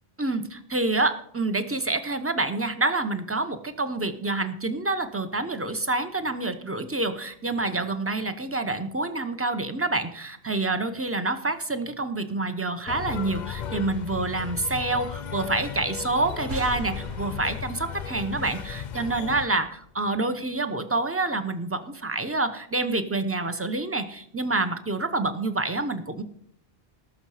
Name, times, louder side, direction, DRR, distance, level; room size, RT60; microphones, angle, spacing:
voice 1, 0.2-26.2, right 2 dB, 15° right, 9 dB, 0.8 m, -27 dB
sound 1, 12.9-19.5, left 8 dB, 50° left, 0.6 m, -36 dB
sound 2, 16.5-20.0, equal, 50° right, 1.3 m, -40 dB
18.5 x 6.4 x 4.9 m, 0.66 s
omnidirectional pair, 1.1 m